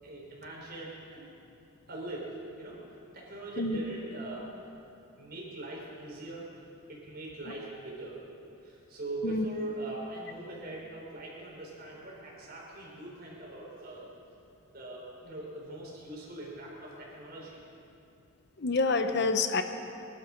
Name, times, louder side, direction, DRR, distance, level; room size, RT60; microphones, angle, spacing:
voice 1, 0.0-1.3 1.9-2.3 2.6-2.8 3.1-4.5 5.2-6.5 6.9-8.2 8.6-14.1 14.7-17.6, right 2 dB, 50° right, -3 dB, 4.1 m, -41 dB
voice 2, 18.6-19.6, left 3 dB, 55° left, 8 dB, 0.8 m, -27 dB
19.0 x 12.0 x 5.9 m, 2.7 s
head